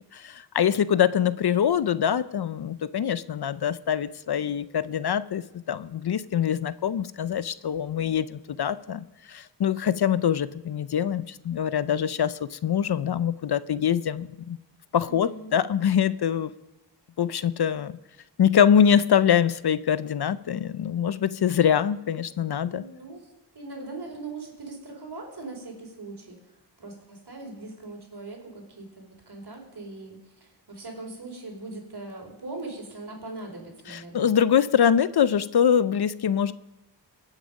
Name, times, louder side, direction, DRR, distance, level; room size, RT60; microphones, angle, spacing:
voice 1, 0.1-14.6 14.9-16.5 17.2-18.0 18.4-22.8 33.9-36.5, left 8 dB, 60° left, 16 dB, 0.6 m, -24 dB
voice 2, 15.0-15.6 22.7-23.2 23.5-26.4 26.8-34.3, right 2 dB, 60° right, 1 dB, 4.3 m, -40 dB
23.5 x 8.9 x 5.3 m, 0.96 s
wide cardioid pair, 80°, 44 cm